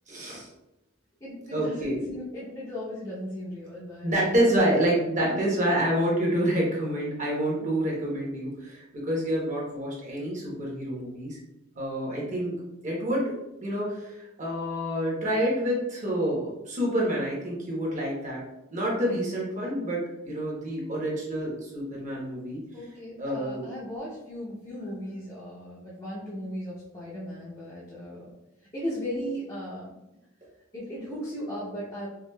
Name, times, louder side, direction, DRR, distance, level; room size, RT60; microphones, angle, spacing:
voice 1, 0.1-0.5 1.5-1.9 4.0-11.4 11.8-12.6 12.8-13.3 13.6-18.4 18.7-22.6 23.2-23.6, right 1 dB, 35° right, -4 dB, 0.9 m, -28 dB
voice 2, 1.2-4.7 5.2-5.5 7.6-7.7 22.7-28.3 28.7-29.9 30.7-32.1, equal, 20° left, -10 dB, 0.7 m, -37 dB
4.7 x 2.4 x 2.2 m, 0.93 s
head